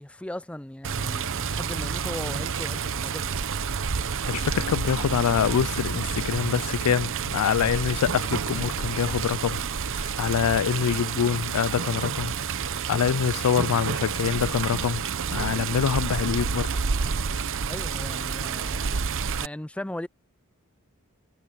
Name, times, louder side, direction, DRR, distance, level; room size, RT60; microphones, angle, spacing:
voice 1, 0.0-3.5 17.6-20.1, left 1 dB, 5° left, 0.4 m, -38 dB
Water, 0.8-19.5, right 6 dB, 60° right, 0.9 m, -29 dB
voice 2, 4.3-9.6 9.9-15.0 15.3-16.7, left 7 dB, 85° left, 0.4 m, -25 dB
head